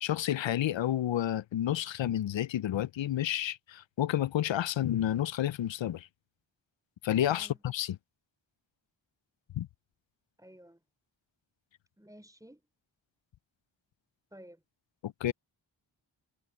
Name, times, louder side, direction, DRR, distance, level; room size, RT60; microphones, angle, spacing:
voice 1, 0.0-6.1 7.0-8.0 9.5-9.7 15.0-15.3, left 12 dB, 75° left, 0.6 m, -30 dB
voice 2, 10.4-10.8 12.0-12.7 14.3-14.6, equal, 5° right, 5.2 m, -53 dB
cardioid pair, 55°, 46 cm